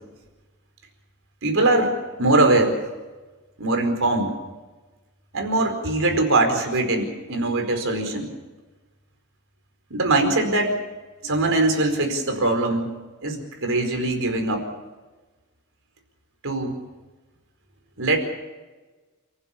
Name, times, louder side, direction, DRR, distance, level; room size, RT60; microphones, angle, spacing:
voice 1, 1.4-1.9 2.2-2.8 3.6-4.3 5.3-8.3 9.9-10.7 11.2-12.9 13.2-14.6 16.4-16.8 18.0-18.2, right 2 dB, 65° right, 5 dB, 4.8 m, -21 dB
29.5 x 15.0 x 7.1 m, 1.2 s
head